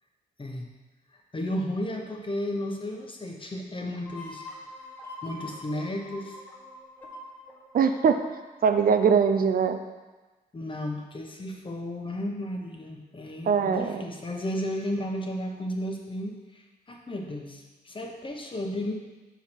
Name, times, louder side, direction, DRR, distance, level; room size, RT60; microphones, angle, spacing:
voice 1, 1.3-4.7 5.2-6.4 10.5-18.9, left 1 dB, 30° left, 1 dB, 1.0 m, -33 dB
sound 1, 4.0-9.5, left 1 dB, 10° left, 1.4 m, -45 dB
voice 2, 7.7-8.2 8.6-9.8 13.5-14.0, right 6 dB, 55° right, 7 dB, 0.5 m, -22 dB
6.1 x 4.6 x 4.5 m, 1.2 s
cardioid pair, 85°, 17 cm